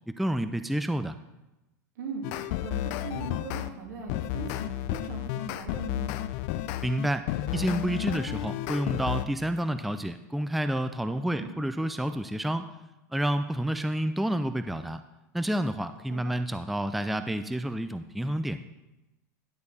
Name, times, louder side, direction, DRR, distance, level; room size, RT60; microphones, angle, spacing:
voice 1, 0.1-1.2 6.8-7.3 7.5-12.6 13.1-15.0 15.3-18.6, right 1 dB, ahead, 10 dB, 0.4 m, -29 dB
voice 2, 2.0-6.1 11.2-11.5 16.1-16.3, right 5 dB, 75° right, 0 dB, 2.7 m, -40 dB
sound 1, 2.2-3.7 4.1-9.3, left 13 dB, 55° left, 0.6 m, -32 dB
11.5 x 6.4 x 4.2 m, 0.99 s
hypercardioid pair, 105°, 10 cm